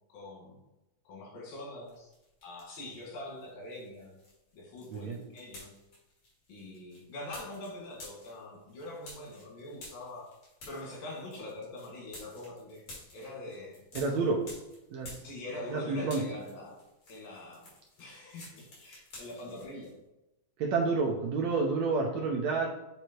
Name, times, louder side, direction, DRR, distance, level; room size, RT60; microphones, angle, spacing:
voice 1, 0.1-0.6 1.1-2.1 2.4-4.1 4.5-5.7 6.5-10.3 10.7-12.9 13.1-13.8 15.2-16.8 17.1-17.7 18.0-19.9, left 2 dB, 90° left, -2 dB, 3.8 m, -43 dB
sound 1, 1.9-3.0 3.4-15.8 16.0-19.9, left 2 dB, 50° left, 3.4 m, -51 dB
voice 2, 14.0-14.4 14.9-15.1 15.7-16.2 20.6-22.7, right 4 dB, 70° right, -1 dB, 1.8 m, -29 dB
8.1 x 3.3 x 4.5 m, 0.94 s
omnidirectional pair, 3.9 m